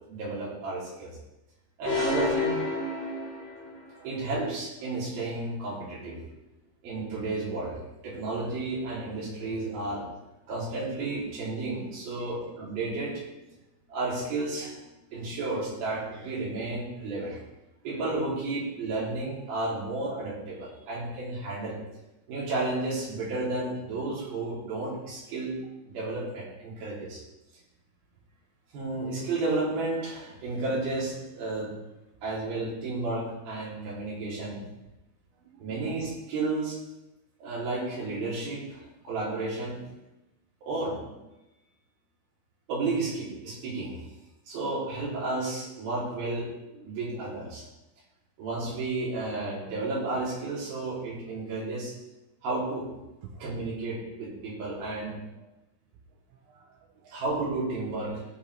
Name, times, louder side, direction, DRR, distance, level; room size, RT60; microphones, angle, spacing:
voice 1, 0.1-1.1 1.8-2.6 4.0-6.2 6.8-10.0 10.5-13.3 13.9-14.8 15.1-17.4 17.8-21.8 22.3-25.5 25.8-27.2 28.7-31.7 32.2-34.6 35.6-36.8 37.4-39.8 40.6-41.1 42.7-43.9 44.5-47.7 48.4-51.9 52.4-52.9 53.4-55.2 57.1-58.2, right 2 dB, 50° right, -6 dB, 5.1 m, -32 dB
sound 1, 1.8-3.8, left 3 dB, 55° left, 1.1 m, -29 dB
voice 2, 3.6-4.4 5.0-5.1 9.6-9.8 11.6-11.7 12.1-12.4 13.5-13.6 35.3-35.9 53.2-53.3 55.4-55.5 56.1-57.2, right 8 dB, 85° right, -1 dB, 3.7 m, -54 dB
17.0 x 7.6 x 3.5 m, 0.97 s
omnidirectional pair, 5.6 m